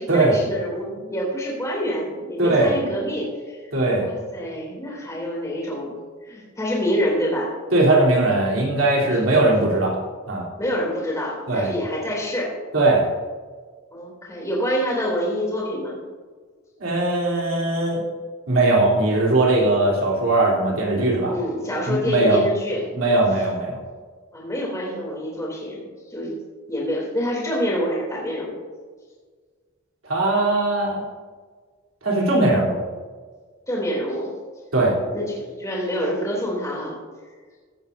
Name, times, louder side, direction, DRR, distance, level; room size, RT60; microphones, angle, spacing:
voice 1, 0.0-3.6 4.0-5.9 6.2-7.5 9.0-9.3 10.6-12.5 13.9-16.0 21.3-22.8 24.3-26.3 26.7-28.5 33.7-34.3 35.1-37.0, equal, 15° left, -4 dB, 3.1 m, -27 dB
voice 2, 2.4-2.7 3.7-4.1 7.7-9.9 10.3-10.5 11.5-11.7 12.7-13.1 16.8-18.0 18.5-21.4 21.9-22.4 22.9-23.8 30.0-31.0 32.0-32.8 34.7-35.0, right 2 dB, 75° right, -3 dB, 3.5 m, -19 dB
15.5 x 13.0 x 2.7 m, 1.5 s
head